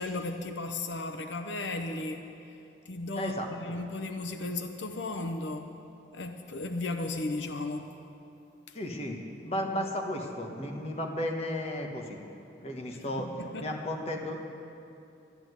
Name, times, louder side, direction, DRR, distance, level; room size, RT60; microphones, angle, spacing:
voice 1, 0.0-2.3 2.9-5.7 6.1-7.9 13.2-13.7, left 2 dB, 85° left, 6 dB, 0.8 m, -35 dB
voice 2, 3.2-3.5 8.7-9.2 9.4-12.2 12.6-13.3 13.6-14.4, left 1 dB, 35° left, 1 dB, 1.3 m, -34 dB
11.5 x 11.5 x 8.0 m, 2.8 s
head